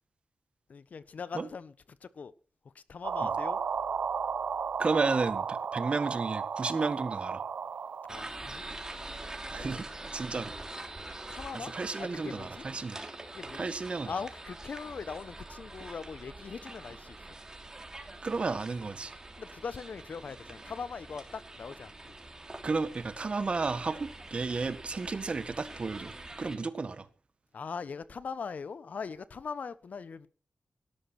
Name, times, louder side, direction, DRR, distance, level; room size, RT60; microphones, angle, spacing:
voice 1, 0.7-2.3 2.7-3.6 8.1-8.6 9.5-9.8 10.3-10.5 11.3-11.7 12.0-12.6 13.3-17.2 19.4-22.2 27.5-30.3, left 5 dB, 70° left, 1.1 m, -41 dB
sound 1, 3.0-8.5, right 6 dB, 85° right, 0.8 m, -34 dB
voice 2, 4.8-7.4 9.5-9.8 10.1-10.5 11.5-13.0 13.5-14.1 18.2-19.1 22.6-26.1 26.4-27.1, right 4 dB, 45° right, 1.7 m, -32 dB
sound 2, 8.1-26.6, right 2 dB, 20° right, 3.3 m, -45 dB
18.0 x 12.5 x 6.0 m
wide cardioid pair, 150°, 3 cm